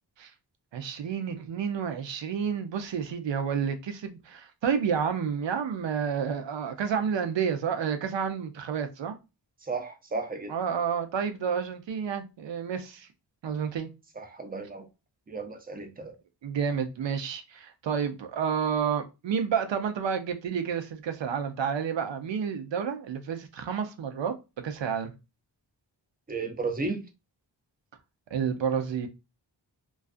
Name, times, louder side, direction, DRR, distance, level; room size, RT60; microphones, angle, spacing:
voice 1, 0.7-9.2 10.5-13.1 13.4-13.9 16.4-24.4 24.6-25.1 28.3-29.1, right 7 dB, 75° right, 0.5 m, -30 dB
voice 2, 9.7-10.5 14.2-14.9 15.3-16.1 26.3-27.0, right 3 dB, 20° right, 0.4 m, -34 dB
2.4 x 2.3 x 2.4 m
wide cardioid pair, 120°, 45 cm